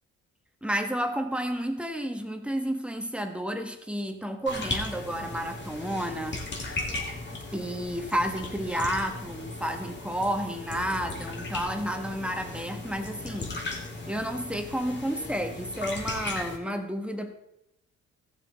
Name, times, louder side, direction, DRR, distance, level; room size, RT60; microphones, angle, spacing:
voice 1, 0.6-6.8 7.5-13.6 14.1-17.3, equal, 5° right, 5 dB, 1.5 m, -31 dB
sound 1, 4.4-16.6, left 2 dB, 35° left, 2.5 m, -37 dB
15.5 x 7.0 x 4.1 m, 0.83 s
cardioid pair, 90°, 30 cm